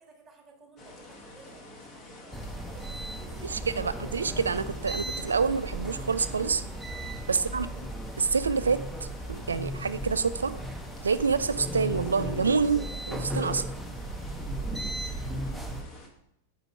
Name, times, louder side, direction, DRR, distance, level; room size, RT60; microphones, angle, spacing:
voice 1, 0.0-3.9 7.3-8.0 14.7-15.8, right 3 dB, 20° right, 2 dB, 1.5 m, -56 dB
sound 1, 0.8-16.1, left 2 dB, 30° left, 1.1 m, -49 dB
sound 2, 2.3-15.8, right 1 dB, ahead, 0.6 m, -36 dB
voice 2, 3.4-6.6 7.3-7.7 8.2-10.5 11.0-13.6, right 5 dB, 75° right, 14 dB, 0.3 m, -27 dB
5.0 x 4.6 x 4.6 m, 0.76 s
figure-of-eight pair, 90°, 0 cm